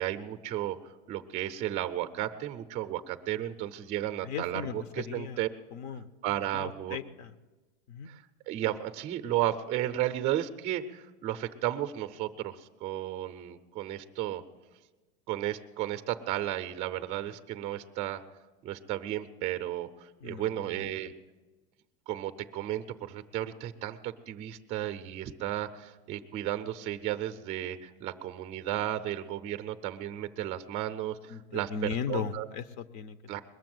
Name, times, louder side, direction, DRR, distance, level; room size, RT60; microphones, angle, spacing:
voice 1, 0.0-5.5 6.2-7.0 8.1-14.4 15.3-18.2 18.6-21.1 22.1-32.5 33.3-33.4, right 13 dB, 20° right, 9 dB, 0.4 m, -34 dB
voice 2, 4.2-5.4 5.7-6.1 6.5-7.3 7.9-8.1 20.2-20.9 31.3-33.2, left 6 dB, 65° left, 12 dB, 0.8 m, -37 dB
21.0 x 7.2 x 7.7 m, 1.2 s
supercardioid pair, 165°, 35 cm